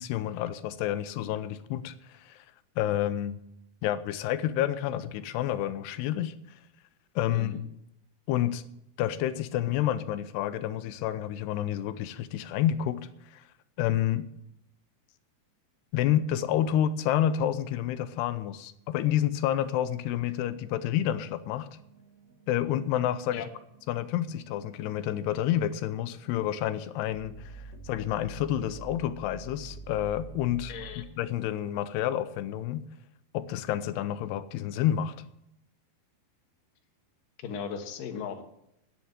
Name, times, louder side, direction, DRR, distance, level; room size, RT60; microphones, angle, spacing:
voice 1, 0.0-2.4 2.8-3.4 3.8-6.3 7.2-7.6 8.3-8.6 9.0-13.4 13.8-14.3 15.9-21.7 22.5-23.4 23.9-32.8 33.3-35.1, left 11 dB, 90° left, 12 dB, 2.8 m, -29 dB
sound 1, 20.3-31.0, right 3 dB, 55° right, 2.4 m, -49 dB
voice 2, 30.7-31.0 37.4-38.4, left 7 dB, 65° left, 5 dB, 2.7 m, -37 dB
10.0 x 9.3 x 7.5 m, 0.81 s
omnidirectional pair, 4.6 m